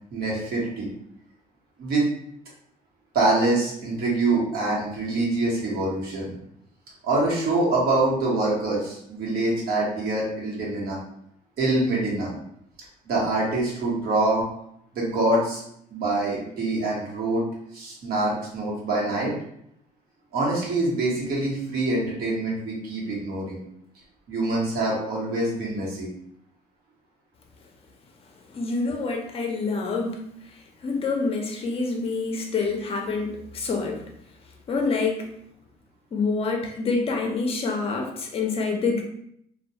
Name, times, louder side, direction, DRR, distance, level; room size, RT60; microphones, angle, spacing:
voice 1, 0.1-0.9 1.8-2.0 3.1-6.3 7.0-11.0 11.6-12.3 13.1-14.4 14.9-15.6 15.9-17.4 17.7-19.3 20.3-23.6 24.3-26.1, right 2 dB, 65° right, -4 dB, 1.0 m, -25 dB
voice 2, 28.5-30.2 30.8-34.0 34.7-35.3 36.1-39.0, left 4 dB, 35° left, 2 dB, 0.5 m, -26 dB
2.2 x 2.2 x 2.7 m, 0.73 s
cardioid pair, 110°, 17 cm